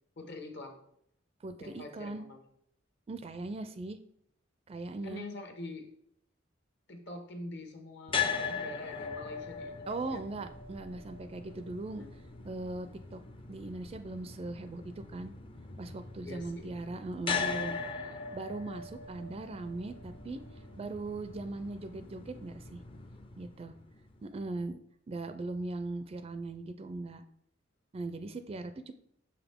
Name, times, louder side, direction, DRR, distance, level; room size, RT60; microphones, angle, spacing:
voice 1, 0.2-0.8 1.6-2.4 5.0-5.9 6.9-9.8 10.1-10.2 11.9-12.1 16.2-16.7, left 2 dB, 60° left, 3 dB, 1.3 m, -45 dB
voice 2, 1.4-2.3 3.1-4.0 4.7-5.2 9.9-12.0 12.4-13.2 13.5-14.8 15.1-15.3 15.8-17.8 18.1-20.4 20.8-22.8 23.4-23.7 24.2-24.8 25.1-27.2 27.9-28.9, right 2 dB, 30° right, 10 dB, 0.4 m, -39 dB
sound 1, 8.1-24.2, left 5 dB, 30° left, 0.5 m, -40 dB
6.5 x 5.9 x 3.5 m, 0.70 s
head